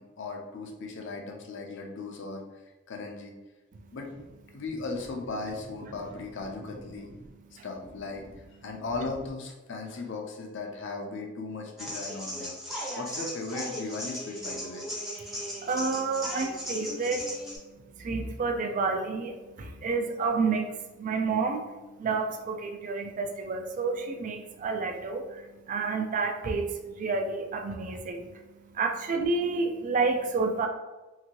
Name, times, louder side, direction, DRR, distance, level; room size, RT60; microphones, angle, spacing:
voice 1, 0.0-2.4 2.9-3.3 3.9-4.1 4.5-7.1 7.6-8.3 8.6-12.6 13.0-14.9 16.2-16.4, left 3 dB, 60° left, 2 dB, 0.5 m, -37 dB
sound 1, 11.8-17.6, equal, ahead, 0.6 m, -37 dB
voice 2, 15.2-30.7, right 4 dB, 40° right, 5 dB, 0.3 m, -30 dB
2.8 x 2.6 x 2.8 m, 1.1 s
head